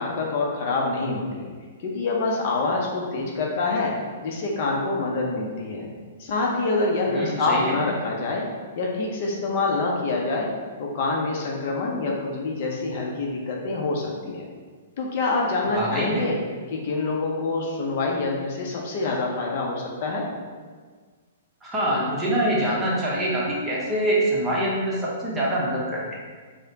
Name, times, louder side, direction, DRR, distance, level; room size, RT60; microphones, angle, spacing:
voice 1, 0.0-1.5 1.8-3.9 4.2-5.9 6.2-8.4 8.8-10.5 10.8-14.5 15.0-16.4 16.7-20.3, left 3 dB, 50° left, -1 dB, 0.6 m, -26 dB
voice 2, 7.1-7.8 15.7-16.3 21.6-26.0, right 1 dB, 15° right, -5 dB, 0.9 m, -25 dB
4.8 x 2.1 x 2.8 m, 1.5 s
figure-of-eight pair, 115°, 0 cm